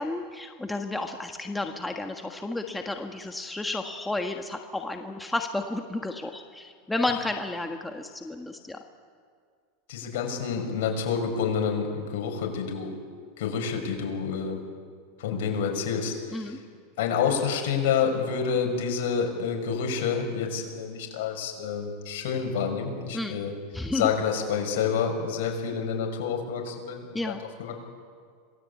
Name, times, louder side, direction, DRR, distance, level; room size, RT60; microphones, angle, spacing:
voice 1, 0.0-8.8 16.3-16.6 23.1-23.4 23.7-24.1 27.1-27.4, left 2 dB, 5° left, 4 dB, 1.5 m, -32 dB
voice 2, 9.9-13.0 13.4-14.6 15.2-16.6 17.0-23.5 23.9-27.8, left 6 dB, 70° left, 2 dB, 6.0 m, -28 dB
27.0 x 19.0 x 8.5 m, 2.1 s
supercardioid pair, 130°, 0 cm